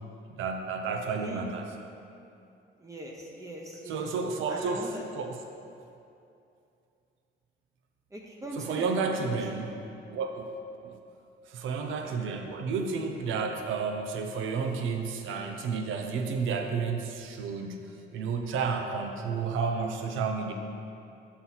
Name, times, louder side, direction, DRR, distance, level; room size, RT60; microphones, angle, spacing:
voice 1, 0.4-1.7 3.9-4.9 5.1-5.4 8.6-9.7 10.1-10.5 10.8-11.0 11.5-20.5, right 5 dB, 80° right, 4 dB, 0.6 m, -31 dB
voice 2, 1.0-1.5 2.8-4.1 4.5-5.0 8.1-9.7, right 1 dB, 15° right, -2 dB, 0.7 m, -41 dB
5.9 x 5.8 x 4.0 m, 2.6 s
cardioid pair, 90°, 20 cm